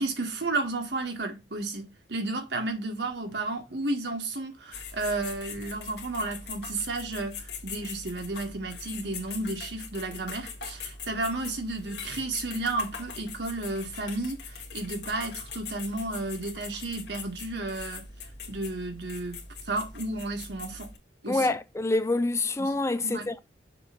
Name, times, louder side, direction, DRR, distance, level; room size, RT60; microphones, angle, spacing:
voice 1, 0.0-18.1 18.5-20.9 21.2-21.5 22.6-23.3, right 2 dB, 70° right, 1.7 m, -33 dB
sound 1, 4.7-21.0, left 5 dB, 70° left, 1.9 m, -42 dB
voice 2, 21.3-23.4, left 2 dB, 15° left, 0.4 m, -26 dB
6.8 x 3.3 x 5.8 m
head